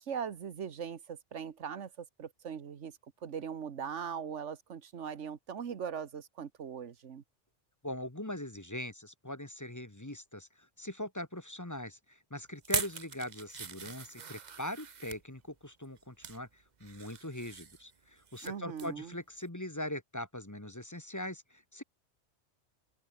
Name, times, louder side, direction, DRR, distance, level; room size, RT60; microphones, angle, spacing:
voice 1, 0.0-7.2 18.4-19.1, right 7 dB, 90° right, 1.5 m, -40 dB
voice 2, 7.8-21.8, left 1 dB, 15° left, 1.5 m, -41 dB
sound 1, 12.6-15.2 15.8-16.4 16.8-18.5 18.8-19.0 19.4-19.5, right 6 dB, 40° right, 1.0 m, -41 dB
open air
omnidirectional pair, 1.2 m